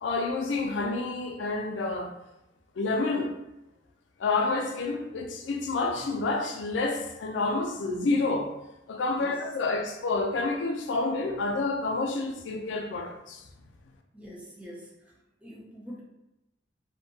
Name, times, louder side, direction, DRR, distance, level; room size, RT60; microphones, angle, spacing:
voice 1, 0.0-2.1 2.8-3.3 4.2-8.5 8.9-13.4, left 3 dB, 90° left, 4 dB, 0.4 m, -29 dB
voice 2, 14.1-15.2 15.4-16.0, equal, 5° right, -4 dB, 0.4 m, -45 dB
2.6 x 2.2 x 2.6 m, 0.93 s
head